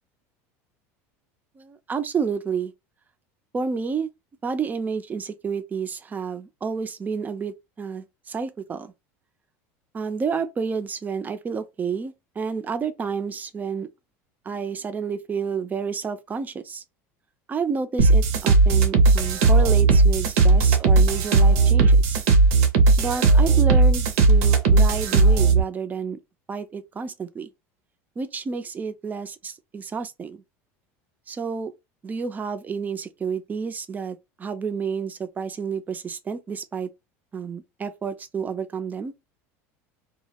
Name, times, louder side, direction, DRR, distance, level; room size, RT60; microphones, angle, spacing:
voice 1, 1.6-2.7 3.5-4.1 4.4-8.9 9.9-13.9 14.5-16.8 17.5-22.2 23.0-26.2 26.5-27.5 28.2-30.4 31.3-31.7 32.0-36.9 37.3-39.1, right 5 dB, 20° right, 0.4 m, -30 dB
sound 1, 18.0-25.6, right 3 dB, 75° right, 0.6 m, -17 dB
2.2 x 2.0 x 2.8 m
supercardioid pair, 110°, 8 cm